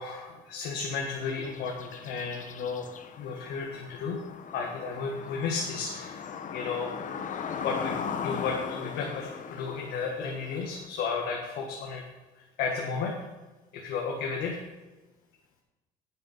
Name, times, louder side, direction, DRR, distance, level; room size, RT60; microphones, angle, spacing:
voice 1, 0.0-4.2 4.5-6.9 7.2-7.3 7.6-12.0 12.4-13.2 13.7-14.6, left 5 dB, 80° left, 0 dB, 1.7 m, -33 dB
sound 1, 1.2-10.9, left 6 dB, 50° left, 0.9 m, -39 dB
9.7 x 8.6 x 5.6 m, 1.2 s
cardioid pair, 110°, 17 cm